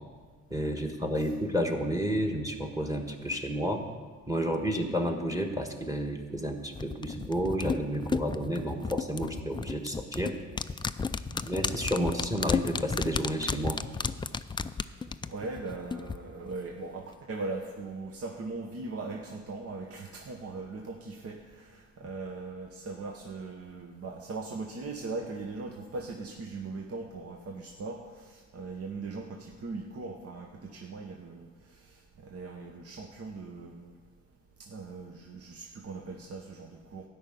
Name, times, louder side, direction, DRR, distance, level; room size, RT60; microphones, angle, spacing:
voice 1, 0.5-3.8 4.3-10.4 11.4-13.8 22.0-22.1, equal, 10° right, 4 dB, 1.5 m, -31 dB
sound 1, 6.8-16.2 16.5-16.6, left 5 dB, 15° left, 0.3 m, -33 dB
voice 2, 15.3-33.9 34.6-37.1, right 3 dB, 50° right, 2 dB, 1.2 m, -40 dB
12.5 x 5.6 x 9.2 m, 1.5 s
cardioid pair, 90°, 30 cm